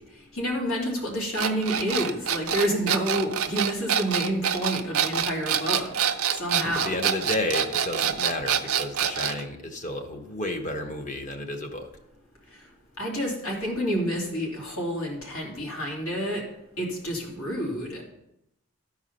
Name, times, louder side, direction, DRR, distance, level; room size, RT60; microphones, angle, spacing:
voice 1, 0.3-5.9 6.3-7.0 13.0-16.4 16.8-18.0, equal, 85° left, -2 dB, 2.8 m, -29 dB
sound 1, 1.3-9.4, right 8 dB, 90° right, 0.7 m, -26 dB
voice 2, 6.6-11.9, left 1 dB, 35° left, 4 dB, 1.1 m, -31 dB
13.0 x 4.8 x 5.5 m, 0.83 s
head